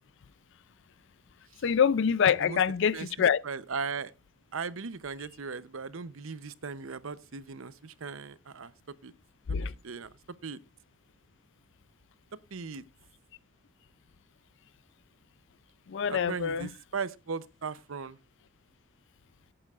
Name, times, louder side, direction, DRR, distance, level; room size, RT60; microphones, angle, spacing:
voice 1, 1.6-3.4 9.5-9.7 15.9-16.7, left 7 dB, 65° left, 0.4 m, -25 dB
voice 2, 3.4-4.1 4.5-8.7 9.0-9.1 9.5-10.1 10.4-10.6 12.5-12.9 16.1-18.2, right 5 dB, 75° right, 0.7 m, -38 dB
17.5 x 8.8 x 2.4 m
head